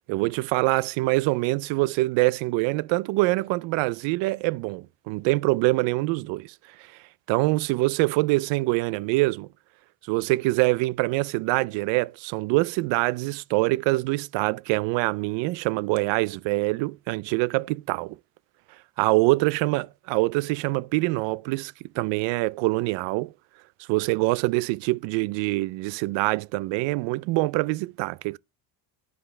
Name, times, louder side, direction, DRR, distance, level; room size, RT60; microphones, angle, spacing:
voice 1, 0.1-6.9 7.3-9.5 10.0-18.2 19.0-23.3 23.8-28.4, right 22 dB, 70° right, 0.5 m, -25 dB
12.0 x 5.0 x 3.2 m
cardioid pair, 125°, 46 cm